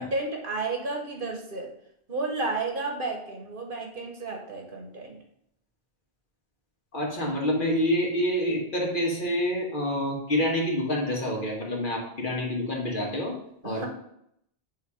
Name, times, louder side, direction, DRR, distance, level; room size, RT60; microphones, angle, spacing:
voice 1, 0.0-1.7 2.1-5.2 13.6-13.9, right 3 dB, 55° right, 2 dB, 1.2 m, -32 dB
voice 2, 6.9-13.3 13.6-13.9, left 1 dB, 50° left, -2 dB, 1.5 m, -27 dB
7.8 x 2.8 x 4.8 m, 0.75 s
omnidirectional pair, 1.1 m